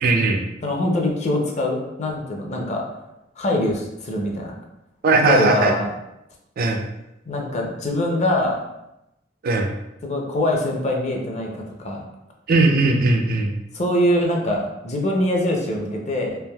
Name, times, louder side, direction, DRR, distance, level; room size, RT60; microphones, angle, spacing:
voice 1, 0.0-0.5 5.0-5.7 6.6-6.8 9.4-9.7 12.5-13.5, right 3 dB, 50° right, 3 dB, 0.4 m, -18 dB
voice 2, 0.6-2.8 3.4-4.5 5.2-5.9 7.3-8.6 10.0-12.0 13.7-16.4, left 1 dB, 35° left, 0 dB, 0.5 m, -23 dB
3.3 x 2.6 x 2.2 m, 0.90 s
head